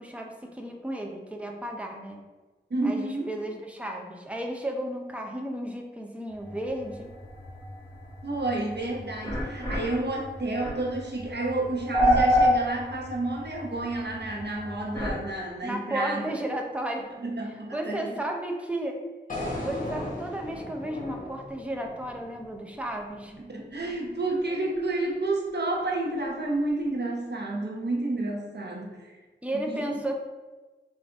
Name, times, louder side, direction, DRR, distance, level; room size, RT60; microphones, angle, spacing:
voice 1, 0.0-2.2 2.8-7.1 15.6-17.1 17.7-19.0 19.6-23.4 29.4-30.2, right 1 dB, 5° right, 2 dB, 0.5 m, -33 dB
voice 2, 2.7-3.3 8.2-16.2 17.2-18.1 19.3-19.5 23.4-29.2 29.7-30.0, right 2 dB, 60° right, -1 dB, 0.8 m, -30 dB
sound 1, 6.3-15.2, equal, 15° left, 1.2 m, -29 dB
sound 2, 19.3-23.4, left 1 dB, 45° left, 1.1 m, -37 dB
3.7 x 2.6 x 3.4 m, 1.2 s
wide cardioid pair, 55°, 19 cm